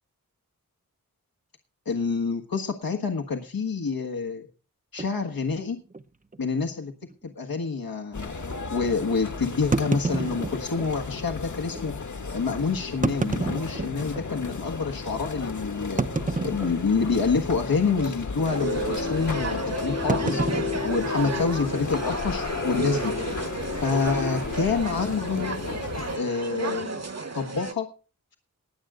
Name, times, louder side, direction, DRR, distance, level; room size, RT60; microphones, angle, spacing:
voice 1, 1.8-4.5 4.9-5.8 6.4-6.9 7.2-8.4 8.7-11.9 12.3-16.0 16.4-20.4 20.8-23.4 23.7-25.6 26.1-27.0 27.3-27.9, left 5 dB, 85° left, 2 dB, 1.5 m, -27 dB
sound 1, 5.0-5.2 5.9-6.0 6.3-6.4 7.0-7.1 9.7-10.9 11.7-11.8 12.9-14.3 14.8-14.9 16.0-17.1 17.4-17.7 18.0-18.3 20.1-21.7, right 3 dB, 25° right, 0.7 m, -29 dB
sound 2, 8.1-26.2, left 4 dB, 55° left, 1.4 m, -33 dB
sound 3, 18.4-27.7, right 4 dB, 45° right, 1.4 m, -33 dB
20.0 x 7.9 x 3.7 m, 0.35 s
wide cardioid pair, 80°, 35 cm